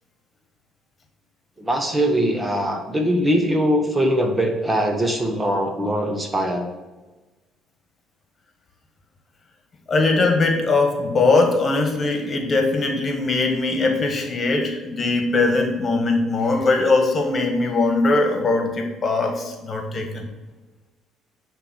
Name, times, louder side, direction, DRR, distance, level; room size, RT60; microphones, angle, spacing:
voice 1, 1.6-6.7, equal, 15° right, 4 dB, 1.3 m, -21 dB
voice 2, 9.9-20.3, left 3 dB, 40° left, 4 dB, 1.5 m, -20 dB
9.7 x 3.5 x 6.1 m, 1.2 s
supercardioid pair, 75°, 0 cm